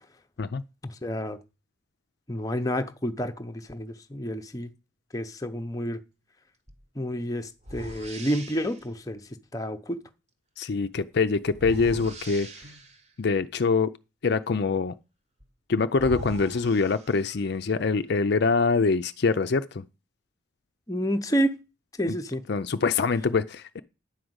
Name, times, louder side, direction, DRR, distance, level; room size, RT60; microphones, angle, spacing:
voice 1, 0.8-1.4 2.3-4.7 5.1-6.0 7.0-9.2 9.5-10.0 20.9-21.5 22.0-22.4, equal, 15° left, 0.7 m, -29 dB
sound 1, 6.7-6.8 7.6-8.9 11.5-13.1 15.4-15.5 15.9-17.6, right 1 dB, 35° right, 1.1 m, -40 dB
voice 2, 10.6-12.5 13.2-13.9 14.2-14.9 15.7-19.8 22.1-22.2 22.5-23.8, left 4 dB, 50° left, 0.5 m, -24 dB
10.5 x 5.0 x 7.8 m
head